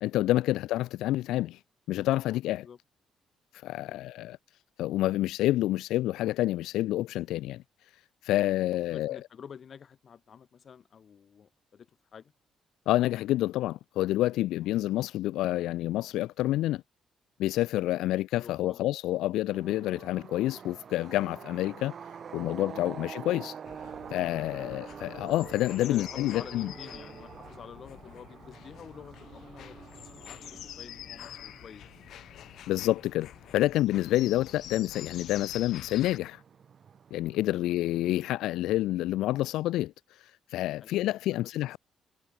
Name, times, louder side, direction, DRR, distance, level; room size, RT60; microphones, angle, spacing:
voice 1, 0.0-1.6 1.9-2.7 3.5-4.4 4.8-7.6 8.2-9.2 12.9-16.8 17.4-22.0 22.3-23.6 24.1-26.7 32.7-36.4 37.1-41.8, left 15 dB, 90° left, 0.4 m, -28 dB
voice 2, 8.9-12.3 14.5-14.8 18.4-18.8 22.8-23.1 24.6-24.8 25.8-31.8 37.5-37.7 40.8-41.8, left 7 dB, 50° left, 2.9 m, -49 dB
sound 1, 19.5-38.3, right 7 dB, 50° right, 3.5 m, -47 dB
sound 2, 23.7-36.2, left 11 dB, 75° left, 1.7 m, -46 dB
cardioid pair, 90°, 0 cm